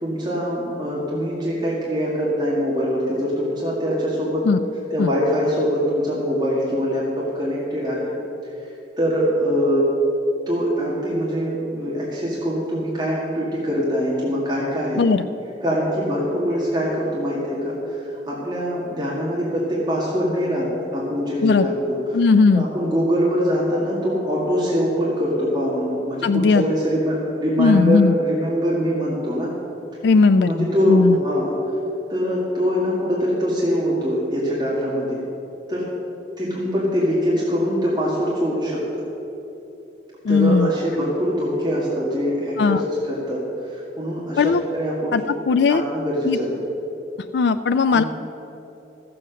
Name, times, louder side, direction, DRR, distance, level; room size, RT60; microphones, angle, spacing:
voice 1, 0.0-4.5 4.9-8.1 9.0-9.9 10.5-15.0 15.6-21.7 22.1-22.2 22.5-29.5 30.4-31.5 32.1-35.2 35.7-35.9 36.4-39.0 40.3-45.4 45.7-46.5 47.9-48.0, equal, 25° right, -6 dB, 1.9 m, -23 dB
voice 2, 22.1-22.7 26.2-26.6 27.6-28.1 30.0-31.2 40.2-40.7 42.6-42.8 44.4-44.6 45.1-45.8 46.3-46.4 47.3-48.0, left 4 dB, 75° left, 10 dB, 0.4 m, -17 dB
13.0 x 7.7 x 6.3 m, 3.0 s
head